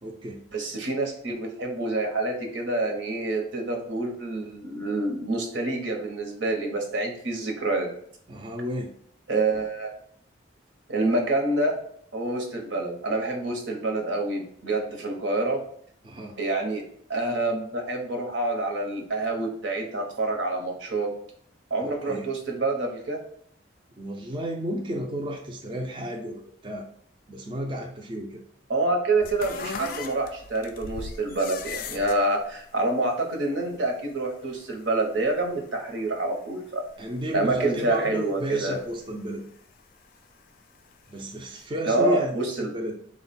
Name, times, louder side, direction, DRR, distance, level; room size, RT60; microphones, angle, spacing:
voice 1, 0.0-0.4 8.3-8.9 16.0-16.4 21.8-22.3 24.0-26.9 27.3-28.4 37.0-39.4 41.1-42.9, equal, 25° right, 1 dB, 0.4 m, -32 dB
voice 2, 0.5-7.9 9.3-9.9 10.9-11.8 12.1-15.6 16.4-16.8 17.1-21.1 21.7-23.2 28.7-36.8 37.3-38.8 41.9-42.7, right 2 dB, 80° right, 2 dB, 0.8 m, -27 dB
sound 1, 29.2-37.7 37.9-39.5 40.0-41.2 41.5-41.6, left 5 dB, 50° left, 0.3 m, -40 dB
3.8 x 2.1 x 4.0 m, 0.65 s
head